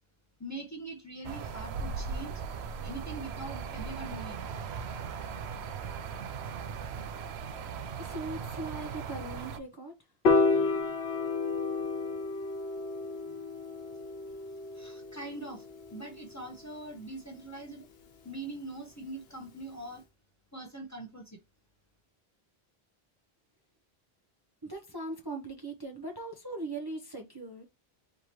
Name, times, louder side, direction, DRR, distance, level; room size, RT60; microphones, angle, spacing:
voice 1, 0.4-2.4 2.8-4.5 14.7-17.9 18.2-20.0 20.5-21.4, right 2 dB, 15° left, 0.9 m, -42 dB
sound 1, 1.2-9.6, right 6 dB, 85° right, 0.9 m, -38 dB
voice 2, 8.0-10.0 24.6-27.6, right 2 dB, 25° right, 0.7 m, -39 dB
Piano, 10.2-16.6, left 4 dB, 70° left, 1.1 m, -31 dB
4.6 x 3.4 x 3.0 m
omnidirectional pair, 1.1 m